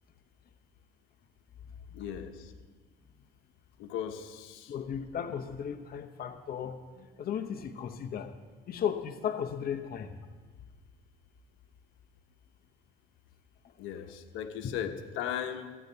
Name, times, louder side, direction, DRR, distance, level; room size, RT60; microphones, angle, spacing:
voice 1, 1.9-2.5 3.8-4.7 7.0-7.1 13.8-15.8, left 9 dB, 80° left, 7 dB, 1.0 m, -37 dB
voice 2, 4.7-6.8 7.2-8.3 8.7-10.1 14.6-14.7, left 8 dB, 50° left, 7 dB, 0.8 m, -35 dB
15.0 x 9.7 x 4.0 m, 1.5 s
cardioid pair, 95°, 20 cm